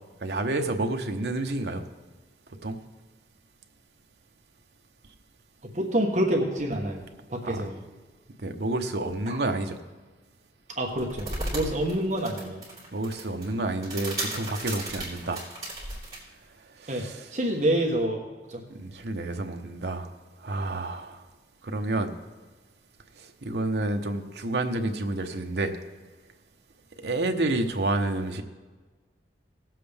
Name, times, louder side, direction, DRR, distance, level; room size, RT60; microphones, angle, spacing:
voice 1, 0.2-1.8 2.6-2.8 7.4-7.7 8.4-9.8 12.9-15.4 16.8-17.3 18.7-20.1 20.4-21.2 21.6-22.1 23.2-25.8 27.0-28.4, right 2 dB, 70° right, 5 dB, 0.9 m, -29 dB
voice 2, 5.7-7.0 7.3-7.8 9.3-9.4 10.8-12.6 16.9-17.0 17.3-18.2 18.5-18.6, right 1 dB, 40° right, 1 dB, 1.2 m, -27 dB
sound 1, 10.8-16.2, right 1 dB, 20° right, 3.2 m, -35 dB
18.0 x 7.6 x 3.5 m, 1.3 s
head